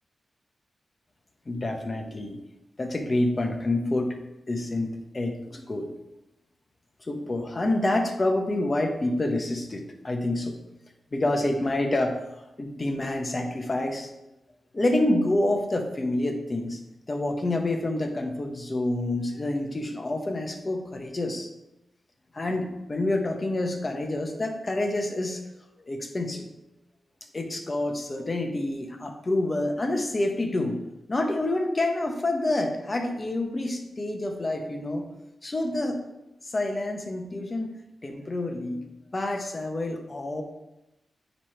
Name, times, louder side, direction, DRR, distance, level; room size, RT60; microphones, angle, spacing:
voice 1, 1.5-2.4 2.8-4.2 4.5-5.9 7.1-10.6 11.1-14.1 14.7-16.8 17.1-21.5 22.3-25.4 25.8-26.5 27.3-30.8 31.1-35.1 35.4-36.0 36.4-37.7 38.0-38.8 39.1-40.4, left 2 dB, 40° left, 4 dB, 1.2 m, -28 dB
9.5 x 3.4 x 4.5 m, 0.95 s
cardioid pair, 50°, 0 cm